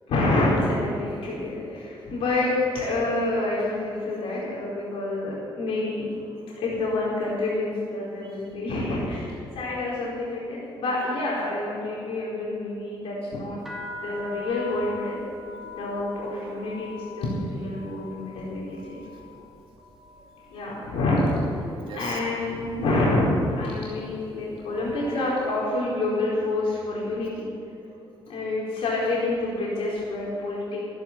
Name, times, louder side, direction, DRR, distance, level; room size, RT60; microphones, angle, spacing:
voice 1, 0.1-6.1 6.5-13.6 14.0-15.2 15.6-19.0 20.5-21.3 21.9-27.5 28.2-30.8, left 2 dB, 85° left, -6 dB, 4.5 m, -27 dB
voice 2, 6.3-6.6 8.2-8.6 13.8-14.2 17.7-17.9 19.0-19.7 20.1-20.7 21.6-22.2 24.7-25.5 27.8-28.5 29.9-30.4, right 4 dB, 65° right, 1 dB, 2.7 m, -47 dB
sound 1, 13.6-21.5 21.8-22.4 23.1-23.4 23.6-25.1, left 3 dB, 5° right, 3.1 m, -43 dB
15.0 x 11.5 x 7.4 m, 2.8 s
cardioid pair, 120°, 9 cm